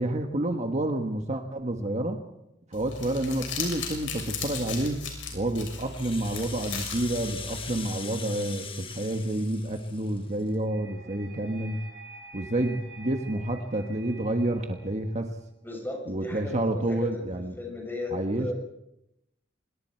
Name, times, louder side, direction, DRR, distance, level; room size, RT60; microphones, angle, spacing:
voice 1, 0.0-2.2 2.7-5.0 5.3-11.8 12.3-15.3 16.1-17.5 18.1-18.5, right 1 dB, 40° right, 4 dB, 1.5 m, -29 dB
Crumpling crinkling, 2.7-7.8, left 5 dB, 90° left, 6.7 m, -37 dB
Rattle (instrument), 5.8-10.5, left 6 dB, 30° left, 1.6 m, -41 dB
sound 1, 10.4-15.4, right 3 dB, 70° right, 7.6 m, -49 dB
voice 2, 15.6-17.3 17.6-18.5, left 2 dB, 10° left, 1 dB, 7.0 m, -36 dB
26.0 x 22.0 x 4.6 m, 0.84 s
head